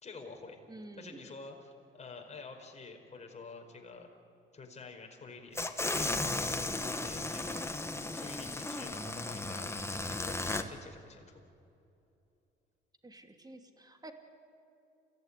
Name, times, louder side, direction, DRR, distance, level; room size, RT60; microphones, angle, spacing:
voice 1, 0.0-0.6 1.0-4.1 4.5-5.6 5.9-6.3 6.7-7.9 8.2-11.4, left 4 dB, 35° left, 2 dB, 4.9 m, -49 dB
voice 2, 0.7-1.3 13.0-14.1, right 2 dB, 20° right, 5 dB, 2.7 m, -50 dB
sound 1, 5.5-10.6, left 2 dB, 15° left, 1.6 m, -35 dB
28.5 x 16.0 x 10.0 m, 2.7 s
cardioid pair, 90°, 20 cm